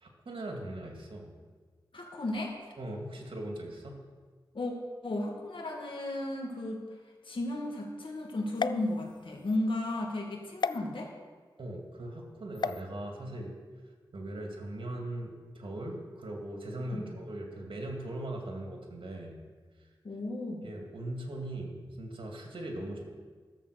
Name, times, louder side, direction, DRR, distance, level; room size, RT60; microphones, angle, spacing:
voice 1, 0.0-1.3 2.8-4.0 11.6-13.6 14.1-19.4 20.6-23.1, right 1 dB, 80° right, 1 dB, 2.2 m, -40 dB
voice 2, 1.9-2.5 4.5-4.7 5.0-6.9 7.2-11.1 16.9-17.1 20.0-20.7, left 1 dB, 70° left, 1 dB, 2.3 m, -34 dB
sound 1, 8.5-9.6 10.6-10.8 12.5-12.8, left 5 dB, 55° left, 0.4 m, -34 dB
14.5 x 7.4 x 6.5 m, 1.5 s
wide cardioid pair, 60°, 9 cm